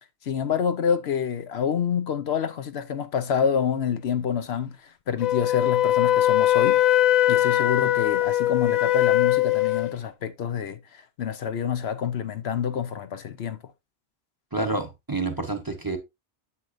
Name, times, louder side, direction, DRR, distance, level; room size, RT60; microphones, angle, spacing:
voice 1, 0.2-6.8 7.3-13.6, left 7 dB, 70° left, 1.0 m, -27 dB
Wind instrument woodwind instrument, 5.2-9.9, left 13 dB, 55° left, 0.5 m, -21 dB
voice 2, 14.5-16.0, right 2 dB, 20° right, 1.1 m, -28 dB
8.4 x 7.5 x 2.5 m
omnidirectional pair, 1.1 m